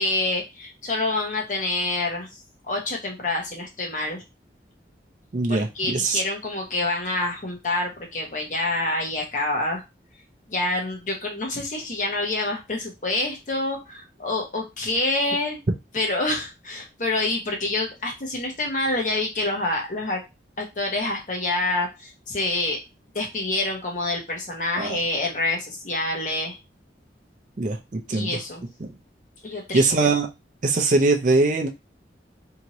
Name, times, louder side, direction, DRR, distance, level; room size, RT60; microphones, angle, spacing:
voice 1, 0.0-2.3 2.7-4.2 5.5-9.8 10.5-15.6 15.9-20.2 20.6-22.8 23.1-26.6 28.1-28.6 29.4-30.1, left 2 dB, 45° left, 0 dB, 0.9 m, -27 dB
voice 2, 5.3-6.2 24.8-25.0 27.6-28.4 28.8-28.9 29.7-30.3 30.6-31.7, right 3 dB, 45° right, 4 dB, 0.5 m, -22 dB
2.8 x 2.6 x 2.9 m, 0.24 s
head